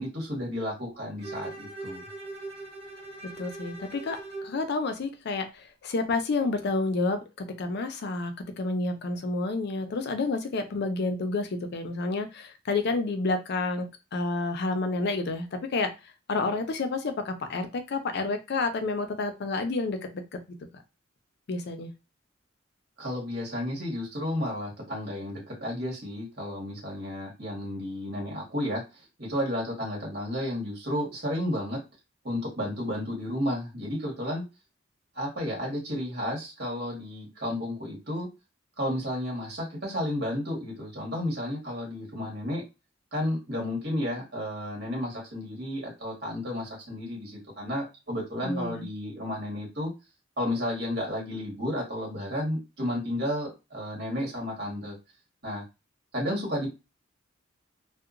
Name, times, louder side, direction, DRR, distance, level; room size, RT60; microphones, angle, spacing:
voice 1, 0.0-2.0 23.0-31.8 32.2-34.4 35.1-38.3 38.8-42.6 43.1-49.9 50.4-55.0 55.4-55.6 56.1-56.7, left 1 dB, 55° right, 1.4 m, -32 dB
Bowed string instrument, 1.2-4.6, right 2 dB, 35° right, 1.5 m, -40 dB
voice 2, 3.4-5.5 5.8-15.5 15.7-15.9 16.3-20.0 21.5-21.9 48.4-48.9, left 3 dB, 55° left, 0.4 m, -29 dB
2.8 x 2.1 x 2.4 m
head